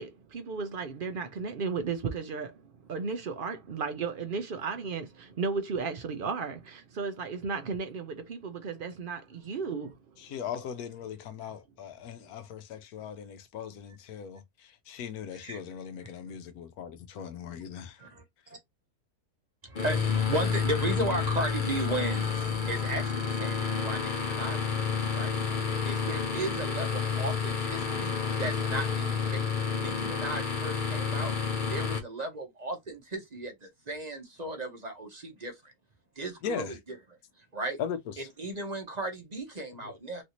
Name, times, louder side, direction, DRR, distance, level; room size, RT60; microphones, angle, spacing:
voice 1, 0.0-10.4 12.2-12.3, right 5 dB, 70° right, 0.5 m, -35 dB
voice 2, 10.2-18.0 36.4-36.8 37.8-38.3 39.8-39.9, left 7 dB, 75° left, 1.1 m, -39 dB
voice 3, 16.0-16.4 18.0-18.2 18.5-18.6 19.6-25.4 25.8-31.3 31.7-35.7 36.2-37.0 37.5-37.8 38.2-40.2, right 1 dB, 30° right, 0.9 m, -36 dB
sound 1, 19.8-32.0, left 6 dB, 40° left, 0.8 m, -30 dB
3.2 x 2.6 x 2.9 m
omnidirectional pair, 1.7 m